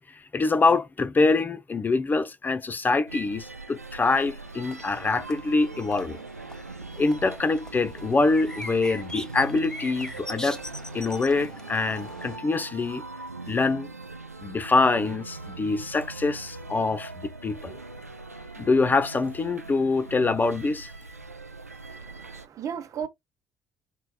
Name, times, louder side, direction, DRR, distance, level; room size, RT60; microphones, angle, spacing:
voice 1, 0.0-6.2 7.0-10.6 10.9-13.0 13.5-13.9 14.4-17.8 18.6-20.9, left 3 dB, 25° left, 0.5 m, -25 dB
sound 1, 3.1-22.5, right 3 dB, 90° right, 0.4 m, -41 dB
sound 2, 4.4-12.4, left 1 dB, 10° left, 0.9 m, -42 dB
voice 2, 21.9-23.1, right 8 dB, 45° right, 0.8 m, -35 dB
4.4 x 3.3 x 2.2 m
figure-of-eight pair, 55°, 8 cm